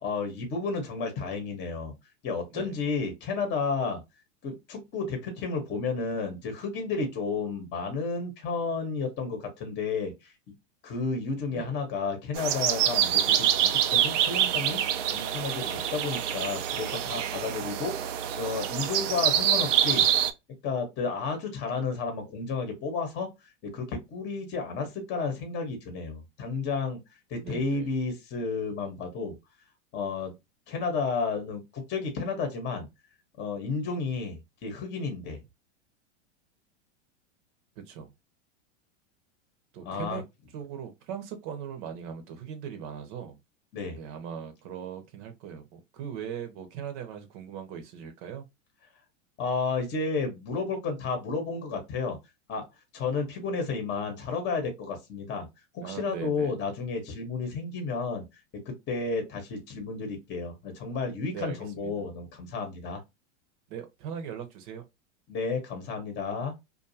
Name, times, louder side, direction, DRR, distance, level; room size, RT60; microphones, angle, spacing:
voice 1, 0.0-1.9 2.2-4.0 4.4-10.3 10.8-18.1 18.4-20.1 20.6-23.3 23.6-27.0 27.3-29.3 29.9-30.3 30.7-32.9 33.4-35.4 39.8-40.2 43.7-44.0 49.4-52.2 52.5-52.6 52.9-55.5 55.7-58.2 58.7-63.0 65.3-66.5, left 4 dB, 30° left, 0.9 m, -32 dB
sound 1, 12.4-20.3, right 10 dB, 80° right, 0.5 m, -26 dB
voice 2, 27.4-27.9 37.8-38.1 39.7-40.2 40.5-43.4 44.0-48.5 55.8-56.6 61.3-61.9 63.7-64.8, right 8 dB, 50° right, 0.8 m, -39 dB
2.6 x 2.4 x 2.6 m
hypercardioid pair, 125°, 36 cm